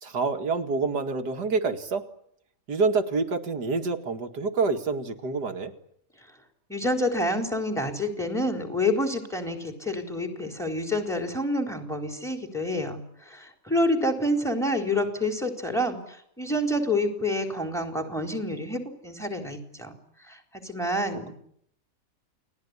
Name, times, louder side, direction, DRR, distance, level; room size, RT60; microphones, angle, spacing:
voice 1, 0.0-2.0 2.7-5.7, right 4 dB, 75° right, 6 dB, 2.7 m, -27 dB
voice 2, 6.7-20.0 20.3-21.3, left 1 dB, ahead, 6 dB, 4.2 m, -28 dB
30.0 x 20.0 x 9.8 m, 0.72 s
omnidirectional pair, 1.8 m